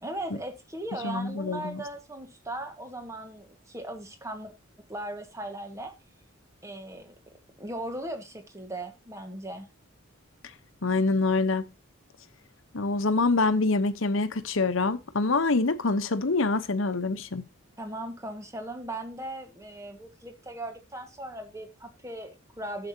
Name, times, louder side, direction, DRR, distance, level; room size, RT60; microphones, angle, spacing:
voice 1, 0.0-4.5 4.9-5.9 6.6-7.1 7.6-9.7 17.8-22.9, right 1 dB, 15° right, 1.6 m, -38 dB
voice 2, 1.0-1.8 10.8-11.7 12.7-17.5, left 3 dB, 75° left, 0.9 m, -25 dB
12.0 x 7.8 x 2.8 m
head